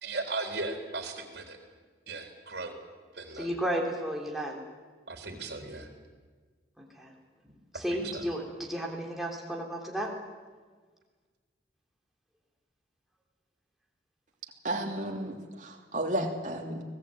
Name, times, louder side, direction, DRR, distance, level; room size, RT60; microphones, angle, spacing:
voice 1, 0.0-1.6 2.1-2.8 3.1-3.5 5.1-5.9 7.7-8.2, right 3 dB, 60° right, 4 dB, 3.9 m, -37 dB
voice 2, 3.3-4.6 6.8-7.1 7.7-10.1, equal, ahead, 0 dB, 3.4 m, -33 dB
voice 3, 14.6-16.8, right 1 dB, 40° right, 2 dB, 3.0 m, -33 dB
25.0 x 18.5 x 9.0 m, 1.5 s
head